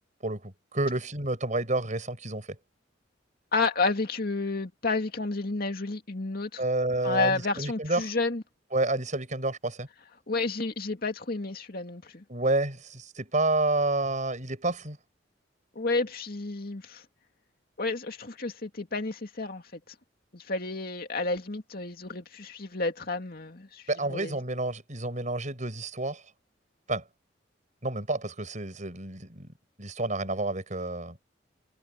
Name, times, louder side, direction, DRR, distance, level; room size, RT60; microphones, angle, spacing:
voice 1, 0.2-2.5 6.6-8.0 8.7-9.9 12.3-15.0 23.9-26.2 26.9-27.0 27.8-29.5 29.8-31.2, right 2 dB, 40° right, 7.4 m, -29 dB
voice 2, 3.5-6.6 7.0-8.4 10.3-12.2 15.8-17.0 17.8-19.8 20.3-23.8 24.1-24.4, left 3 dB, 55° left, 2.3 m, -31 dB
head